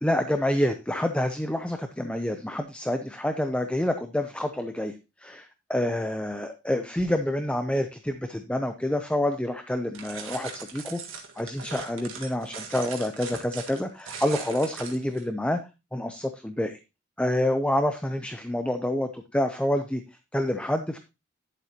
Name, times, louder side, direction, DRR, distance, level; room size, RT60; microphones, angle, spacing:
voice 1, 0.0-4.9 5.2-11.0 11.4-15.6 15.9-16.8 17.2-20.0 20.3-21.0, left 1 dB, 5° left, 7 dB, 0.5 m, -27 dB
sound 1, 9.9-15.2, right 5 dB, 90° right, 1.7 m, -40 dB
11.0 x 7.6 x 2.9 m, 0.26 s
head